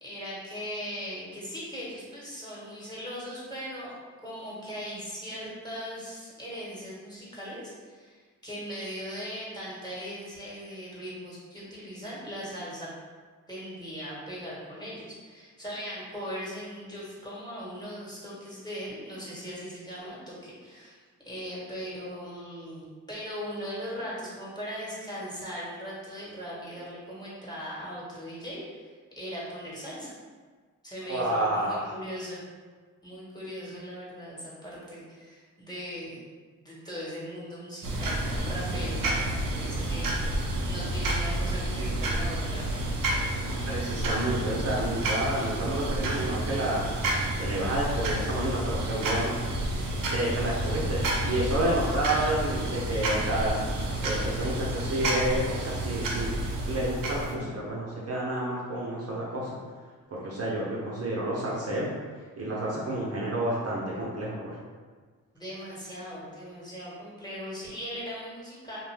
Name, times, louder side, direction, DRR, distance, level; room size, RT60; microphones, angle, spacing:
voice 1, 0.0-4.0 4.2-12.9 13.5-28.9 29.2-30.1 30.8-32.4 33.0-36.2 36.6-40.2 40.6-42.9 65.3-68.8, equal, 10° left, -7 dB, 1.2 m, -39 dB
voice 2, 31.1-31.9 43.7-46.9 47.4-49.4 50.1-53.6 54.0-59.6 60.1-61.9 62.4-64.6, right 1 dB, 50° right, -6 dB, 0.7 m, -30 dB
sound 1, 37.8-57.3, right 1 dB, 85° right, 0.6 m, -30 dB
2.6 x 2.1 x 3.2 m, 1.5 s
cardioid pair, 65°, 33 cm